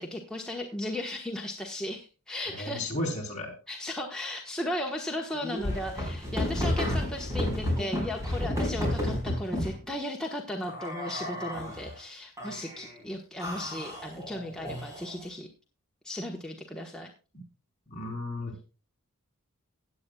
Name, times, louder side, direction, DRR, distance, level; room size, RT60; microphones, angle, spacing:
voice 1, 0.0-2.9 3.7-15.5 16.0-17.1, left 1 dB, 5° left, -1 dB, 1.2 m, -36 dB
voice 2, 2.5-3.5 17.3-17.4 17.9-18.6, left 1 dB, 35° left, 0 dB, 3.6 m, -34 dB
sound 1, 5.3-9.8 10.6-11.9 12.4-12.9 13.4-15.2, left 1 dB, 15° right, 4.7 m, -32 dB
16.5 x 9.5 x 2.3 m, 0.33 s
head